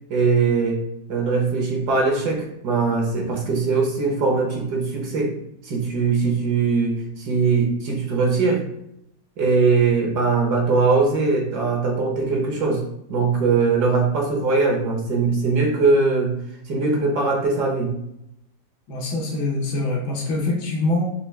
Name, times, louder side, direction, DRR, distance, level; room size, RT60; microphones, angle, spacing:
voice 1, 0.1-0.8 1.1-5.3 5.6-8.6 9.4-12.8 13.1-16.3 16.7-17.9, right 4 dB, 65° right, 0 dB, 1.3 m, -21 dB
voice 2, 18.9-21.0, left 2 dB, 70° left, -1 dB, 1.4 m, -24 dB
4.5 x 3.1 x 3.2 m, 0.79 s
omnidirectional pair, 2.0 m